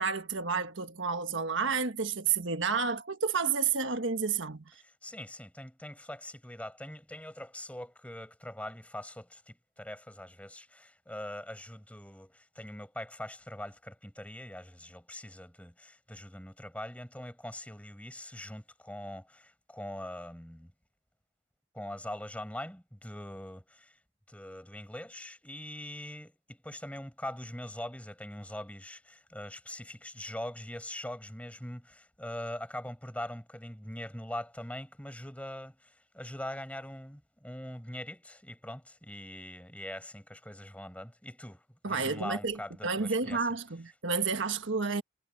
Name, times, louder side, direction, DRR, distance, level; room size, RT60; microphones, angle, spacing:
voice 1, 0.0-4.6 41.8-45.0, right 5 dB, 70° right, 1.5 m, -30 dB
voice 2, 4.8-20.7 21.7-24.0 24.3-43.5, left 1 dB, 5° left, 5.1 m, -42 dB
head